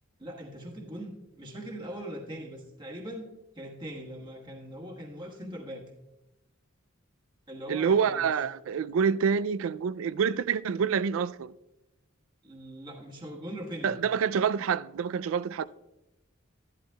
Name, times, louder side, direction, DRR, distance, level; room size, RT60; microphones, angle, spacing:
voice 1, 0.2-3.3 3.5-5.9 7.5-8.3 12.4-14.0, equal, 20° right, 1.3 m, -41 dB
voice 2, 7.7-11.5 13.8-15.7, right 6 dB, 70° right, 0.3 m, -27 dB
13.0 x 11.5 x 2.2 m
head